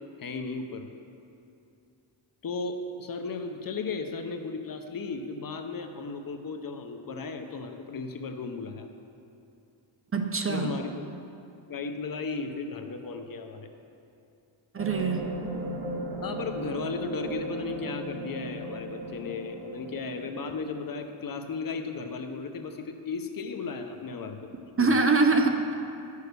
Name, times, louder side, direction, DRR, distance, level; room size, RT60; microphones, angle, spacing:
voice 1, 0.2-0.9 2.4-8.9 10.5-11.1 11.7-13.7 16.2-24.4 24.8-24.9, left 4 dB, 45° left, 6 dB, 0.8 m, -35 dB
voice 2, 10.1-10.7 14.7-15.3 24.8-25.8, right 3 dB, 30° right, 4 dB, 0.8 m, -24 dB
sound 1, 14.8-21.1, right 2 dB, 70° right, 1.4 m, -37 dB
11.5 x 6.6 x 6.7 m, 2.7 s
cardioid pair, 115°, 46 cm